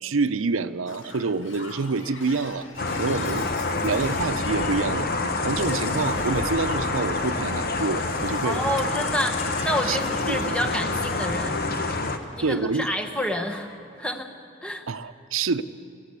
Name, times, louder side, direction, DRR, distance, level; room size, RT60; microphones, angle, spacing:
voice 1, 0.0-2.7 3.0-3.5 3.8-5.1 5.4-8.6 9.8-10.0 10.3-10.5 12.4-12.9 14.9-15.6, right 4 dB, 90° right, 12 dB, 0.7 m, -27 dB
Shatter, 0.9-12.9 13.2-13.8 14.8-15.0, left 2 dB, 70° left, 1.9 m, -42 dB
sound 1, 2.8-12.2, left 3 dB, 45° left, 1.0 m, -27 dB
voice 2, 5.7-6.1 8.4-11.6 12.4-13.7 14.0-14.3 14.6-14.8, equal, 5° left, 4 dB, 1.0 m, -29 dB
20.5 x 15.5 x 8.3 m, 2.4 s
head